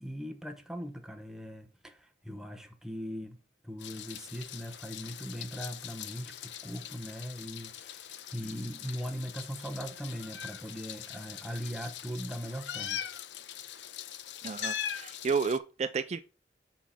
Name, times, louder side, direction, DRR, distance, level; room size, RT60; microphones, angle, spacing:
voice 1, 0.0-3.4 3.6-13.0 13.8-13.9, equal, 5° right, 0.9 m, -40 dB
Meow, 3.8-15.6, left 9 dB, 90° left, 0.7 m, -42 dB
voice 2, 14.4-16.2, right 5 dB, 40° right, 0.3 m, -31 dB
6.2 x 4.6 x 5.6 m
head